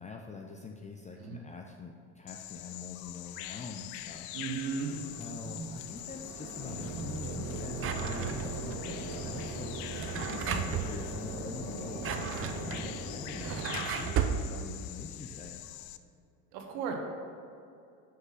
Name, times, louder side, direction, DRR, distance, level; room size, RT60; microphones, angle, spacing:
voice 1, 0.0-4.4 5.2-15.6, left 4 dB, 20° left, 2 dB, 0.4 m, -44 dB
Bird vocalization bird call bird song, 2.3-16.0, left 13 dB, 70° left, 0.5 m, -44 dB
voice 2, 4.3-4.9 16.5-16.9, right 6 dB, 80° right, 2 dB, 1.4 m, -35 dB
sound 1, 4.5-13.7, right 2 dB, 60° right, 1.8 m, -40 dB
Drawer open or close, 7.8-8.7 9.8-10.9 11.8-14.4, right 8 dB, 35° right, 0.5 m, -34 dB
5.9 x 5.7 x 5.8 m, 2.5 s
supercardioid pair, 115°, 38 cm